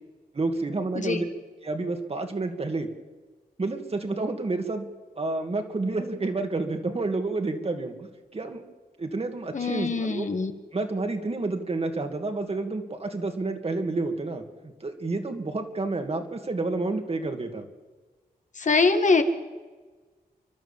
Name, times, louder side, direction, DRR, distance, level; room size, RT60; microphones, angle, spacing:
voice 1, 0.3-1.2 1.6-2.9 3.6-4.9 5.2-8.6 9.0-10.3 10.7-17.6, right 3 dB, 40° right, 5 dB, 2.5 m, -29 dB
voice 2, 0.9-1.3 9.5-10.5 18.6-19.2, left 4 dB, 55° left, 7 dB, 1.8 m, -23 dB
30.0 x 12.0 x 7.4 m, 1.4 s
wide cardioid pair, 95°, 16 cm